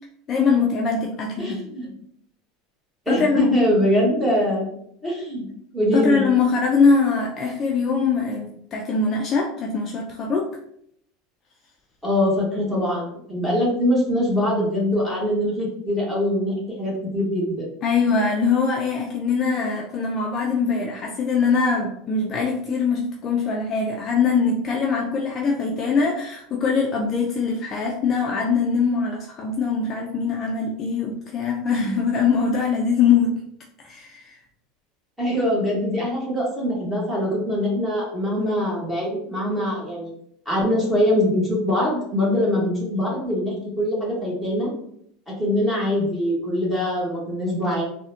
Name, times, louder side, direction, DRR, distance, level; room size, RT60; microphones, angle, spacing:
voice 1, 0.3-1.6 3.1-3.5 5.9-10.5 17.8-33.4 33.8-34.3, left 5 dB, 30° left, 0 dB, 0.3 m, -22 dB
voice 2, 1.4-1.9 3.1-4.7 5.0-5.5 5.7-6.2 12.0-17.7 35.2-40.1 40.5-44.7 45.4-47.8, left 1 dB, 5° right, -5 dB, 1.0 m, -23 dB
3.7 x 2.1 x 2.6 m, 0.70 s
supercardioid pair, 160°, 0 cm